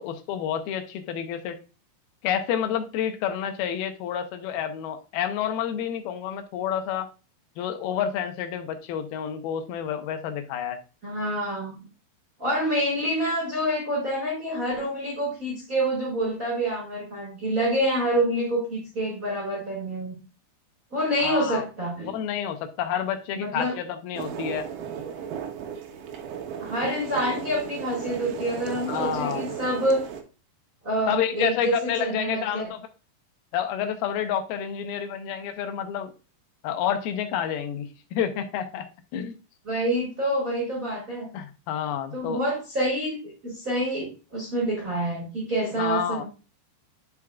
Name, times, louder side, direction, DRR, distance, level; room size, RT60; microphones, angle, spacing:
voice 1, 0.0-1.6 2.2-7.1 7.6-10.8 21.2-21.6 22.0-24.7 28.9-29.5 31.1-32.9 33.5-36.1 36.6-38.9 39.1-39.3 41.3-42.4 45.8-46.2, left 9 dB, 80° left, 7 dB, 2.6 m, -29 dB
voice 2, 11.0-11.8 12.4-20.1 20.9-22.1 23.3-23.8 26.6-30.0 30.8-32.7 39.6-41.3 42.1-46.2, right 1 dB, 30° right, -2 dB, 1.7 m, -27 dB
sound 1, 24.2-30.2, right 7 dB, 80° right, 2.8 m, -35 dB
10.5 x 4.8 x 2.3 m, 0.33 s
omnidirectional pair, 4.4 m